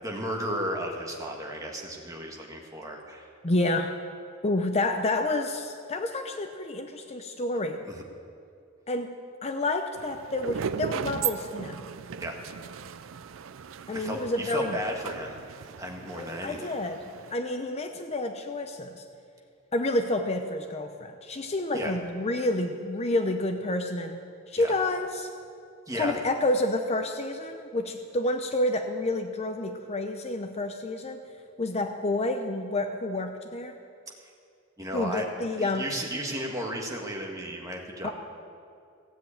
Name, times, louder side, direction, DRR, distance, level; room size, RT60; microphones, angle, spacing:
voice 1, 0.0-3.3 7.8-8.0 12.2-12.4 13.9-16.8 21.7-22.0 24.6-24.7 25.9-26.2 34.2-34.3 34.8-35.3 35.6-38.1, equal, 15° right, 0 dB, 1.7 m, -34 dB
voice 2, 3.4-3.9 4.4-7.8 8.9-9.1 9.4-11.8 13.9-14.8 16.1-17.0 17.3-19.0 19.7-24.2 24.5-25.3 25.9-31.2 31.6-33.7 34.9-35.9 38.0-38.1, left 2 dB, 30° left, 6 dB, 0.7 m, -29 dB
sound 1, 10.0-17.3, right 7 dB, 75° right, 0.5 m, -37 dB
16.0 x 7.8 x 8.6 m, 2.4 s
head